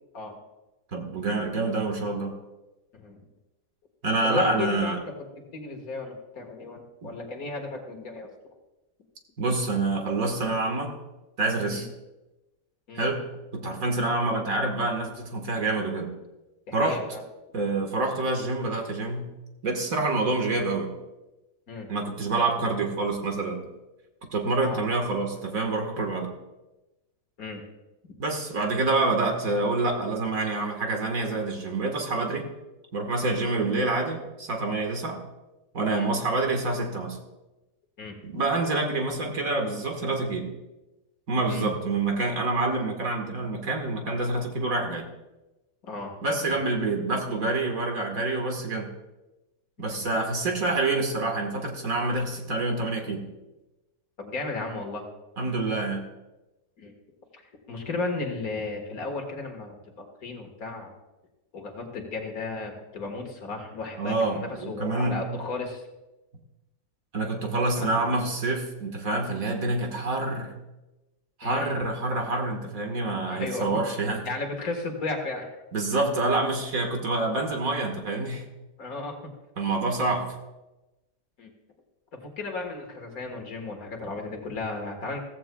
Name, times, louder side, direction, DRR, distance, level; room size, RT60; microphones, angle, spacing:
voice 1, 0.9-2.3 4.0-5.0 7.0-7.1 9.4-10.9 11.4-11.9 12.9-13.2 13.5-16.1 16.7-17.0 17.5-19.3 19.6-20.9 21.9-23.6 24.3-26.3 28.2-32.5 32.9-35.2 35.7-37.2 38.2-40.5 41.3-45.1 46.2-48.9 49.8-53.2 55.4-56.0 64.0-65.2 67.1-70.6 71.4-74.3 75.7-78.5 79.6-80.3, right 2 dB, 55° right, 3 dB, 1.9 m, -27 dB
voice 2, 4.2-5.0 5.4-8.3 11.7-11.9 12.9-13.1 16.7-17.2 21.7-21.9 24.6-24.9 27.4-27.6 36.0-36.1 38.0-38.2 41.5-41.8 45.8-46.1 46.5-46.6 49.8-50.1 54.2-55.1 56.8-56.9 57.3-57.4 57.7-60.9 61.5-65.8 67.8-68.1 71.4-71.8 73.3-73.8 74.2-75.6 78.8-79.2 81.4-81.5 82.1-85.2, left 3 dB, 60° left, 3 dB, 2.1 m, -34 dB
16.0 x 15.0 x 2.3 m, 1.0 s
omnidirectional pair, 1.8 m